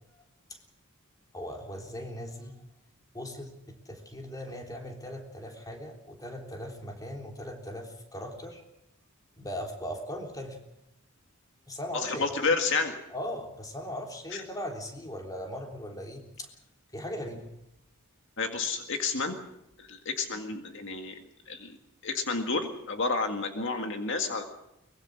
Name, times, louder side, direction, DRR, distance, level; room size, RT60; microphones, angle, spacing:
voice 1, 1.3-2.6 3.1-8.6 9.4-10.6 11.7-12.3 13.1-16.5 16.9-17.5, equal, 15° left, 2 dB, 3.5 m, -39 dB
voice 2, 11.9-12.9 14.3-14.4 18.4-19.4 19.8-21.2 21.5-21.8 22.0-24.4, left 4 dB, 60° left, 5 dB, 1.9 m, -30 dB
23.0 x 21.5 x 6.4 m, 0.86 s
head